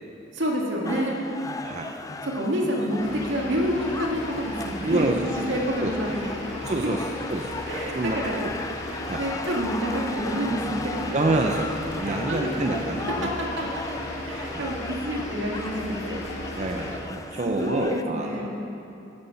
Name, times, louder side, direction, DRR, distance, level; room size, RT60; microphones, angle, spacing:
voice 1, 0.3-1.2 2.2-5.1 5.4-6.4 7.7-8.5 9.0-11.2 12.0-12.8 13.2-13.3 13.6-13.7 14.3-16.2 17.4-18.6, equal, 75° right, -1 dB, 1.9 m, -28 dB
sound 1, 0.8-18.0, left 3 dB, 20° left, 0.3 m, -37 dB
sound 2, 3.0-17.0, left 1 dB, 85° left, 2.4 m, -36 dB
voice 2, 4.8-5.3 5.8-5.9 6.7-7.0 7.3-7.5 7.9-8.5 9.1-9.2 11.1-13.3 13.6-13.7 14.5-14.7 16.6-18.5, right 2 dB, 35° right, 2 dB, 0.6 m, -27 dB
11.5 x 9.7 x 5.7 m, 2.9 s
head